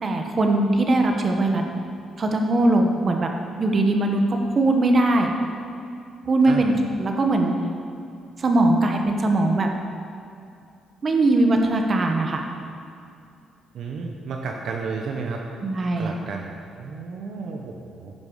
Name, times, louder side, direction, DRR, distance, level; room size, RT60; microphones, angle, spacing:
voice 1, 0.0-1.6 2.2-3.3 3.6-5.3 6.3-7.5 8.4-9.7 11.0-12.4 15.6-16.1, right 2 dB, 40° right, 3 dB, 1.2 m, -20 dB
voice 2, 13.7-15.4 16.0-18.1, right 4 dB, 70° right, 1 dB, 0.9 m, -32 dB
15.0 x 5.4 x 4.8 m, 2.5 s
cardioid pair, 90°, 0 cm